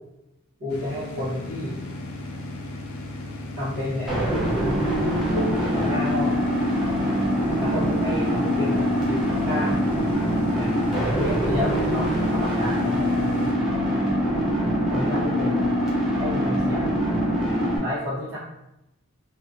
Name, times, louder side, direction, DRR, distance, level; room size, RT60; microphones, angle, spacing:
voice 1, 0.6-1.8 3.5-4.1 5.3-6.4 7.5-9.8 10.5-10.7 11.2-13.5 14.9-15.7 16.2-16.9 17.8-18.4, left 1 dB, 80° right, -11 dB, 1.2 m, -30 dB
sound 1, 0.7-13.5, left 2 dB, 80° left, 0.4 m, -36 dB
sound 2, 4.1-17.8, equal, ahead, 0.5 m, -23 dB
2.8 x 2.4 x 2.5 m, 0.90 s
head